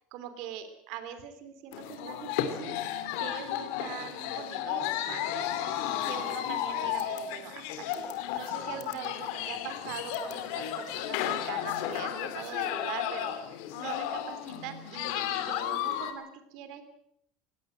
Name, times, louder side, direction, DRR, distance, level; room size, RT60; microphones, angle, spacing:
voice 1, 0.1-2.7 3.2-5.5 6.0-13.4 13.7-16.8, right 9 dB, 55° right, 10 dB, 3.1 m, -42 dB
sound 1, 1.7-16.1, left 10 dB, 70° left, 2.6 m, -33 dB
20.0 x 17.0 x 7.8 m, 0.71 s
cardioid pair, 165°, 0 cm